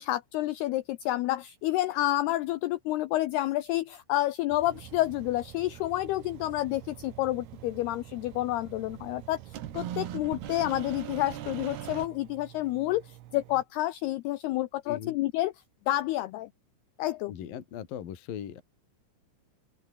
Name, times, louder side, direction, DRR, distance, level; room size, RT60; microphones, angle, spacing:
voice 1, 0.0-15.5 15.9-16.5 17.0-17.3, left 16 dB, 90° left, 2.2 m, -29 dB
sound 1, 4.5-12.1, right 11 dB, 60° right, 3.6 m, -42 dB
Engine, 4.7-13.6, right 15 dB, 80° right, 3.8 m, -51 dB
voice 2, 14.9-15.2 17.3-18.6, left 9 dB, 55° left, 3.7 m, -39 dB
open air
omnidirectional pair, 5.6 m